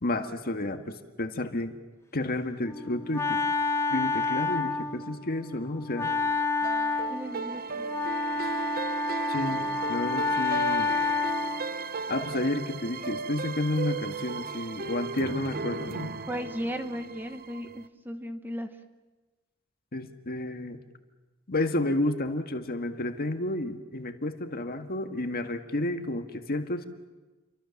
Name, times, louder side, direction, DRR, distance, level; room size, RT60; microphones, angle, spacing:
voice 1, 0.0-1.8 2.1-3.4 3.9-6.1 9.3-10.9 12.1-16.2 19.9-20.8 21.5-26.9, left 2 dB, 45° left, 7 dB, 1.8 m, -31 dB
Wind instrument woodwind instrument, 2.6-11.7, left 3 dB, 15° left, 1.3 m, -29 dB
sound 1, 6.6-17.9, right 5 dB, 45° right, 0.9 m, -36 dB
voice 2, 7.1-7.9 16.3-18.7, equal, 10° right, 8 dB, 1.2 m, -36 dB
29.0 x 24.0 x 7.2 m, 1.2 s
head